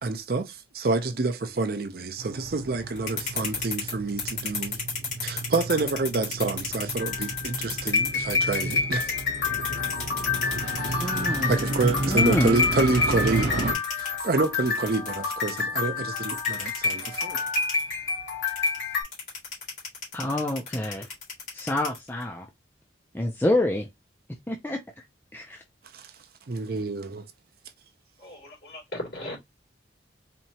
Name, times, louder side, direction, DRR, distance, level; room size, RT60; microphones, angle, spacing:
voice 1, 0.0-4.8 5.2-9.1 11.5-17.5 25.9-26.0 26.5-27.3, right 3 dB, 55° right, 0.5 m, -28 dB
Motorcycle, 2.2-13.7, right 2 dB, 70° right, 0.9 m, -32 dB
sound 1, 2.9-8.7 9.0-15.6 16.2-17.8 18.5-22.2, left 5 dB, 40° left, 2.5 m, -33 dB
sound 2, 7.0-19.0, left 4 dB, 80° left, 2.6 m, -29 dB
voice 2, 11.0-11.5 12.1-12.6 20.1-21.1 21.5-22.5 23.1-23.9 24.5-25.0 25.3-25.6, left 1 dB, 10° left, 0.5 m, -27 dB
voice 3, 28.2-29.4, left 1 dB, 60° left, 2.7 m, -37 dB
4.3 x 2.8 x 2.8 m
head